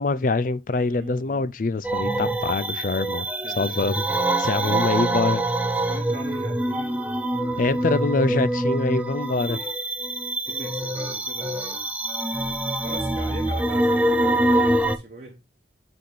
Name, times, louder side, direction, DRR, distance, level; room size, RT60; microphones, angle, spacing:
voice 1, 0.0-3.3 3.6-4.1 4.4-5.5 7.6-9.6, left 3 dB, 45° left, 0.5 m, -24 dB
voice 2, 0.9-1.5 3.4-3.8 4.4-4.8 5.8-7.0 7.3-7.6 9.5-9.7 10.4-11.9 12.8-15.4, right 1 dB, 35° right, 1.1 m, -40 dB
sound 1, 1.8-15.0, right 1 dB, 10° right, 0.5 m, -25 dB
9.0 x 3.8 x 3.8 m
head